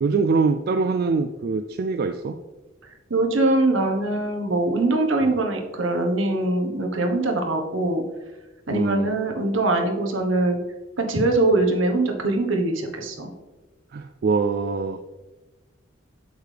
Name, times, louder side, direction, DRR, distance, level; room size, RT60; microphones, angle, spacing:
voice 1, 0.0-2.4 5.2-5.4 8.7-9.2 13.9-15.0, right 4 dB, 50° right, 8 dB, 0.3 m, -24 dB
voice 2, 3.1-8.0 8.7-10.6 11.0-13.3, right 2 dB, 70° right, 3 dB, 1.2 m, -22 dB
8.0 x 6.6 x 3.4 m, 1.1 s
head